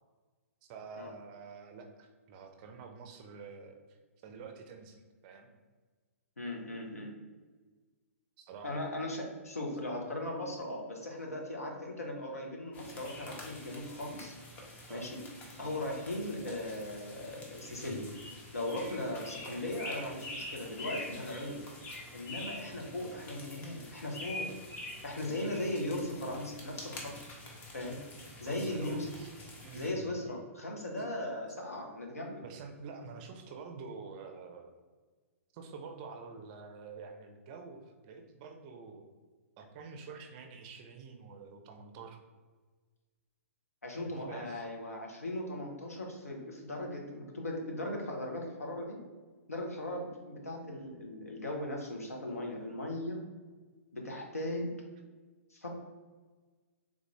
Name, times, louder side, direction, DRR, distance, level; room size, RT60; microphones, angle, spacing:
voice 1, 0.7-5.5 8.4-8.8 14.9-15.1 18.7-18.9 25.3-25.5 28.5-29.3 29.6-30.3 32.4-34.7 35.5-39.1 39.6-42.2 44.0-44.7, right 5 dB, 35° right, 5 dB, 0.4 m, -48 dB
voice 2, 6.4-7.2 8.6-14.3 14.9-15.2 15.6-18.1 18.5-21.6 22.1-24.5 25.0-27.1 27.7-28.0 28.4-29.1 29.7-32.4 43.8-49.0 49.5-53.2 53.9-54.7 55.5-55.7, left 1 dB, 80° left, 0 dB, 0.8 m, -38 dB
sound 1, 12.7-29.9, left 2 dB, 20° left, 0.7 m, -46 dB
3.6 x 2.5 x 3.1 m, 1.4 s
figure-of-eight pair, 115°, 8 cm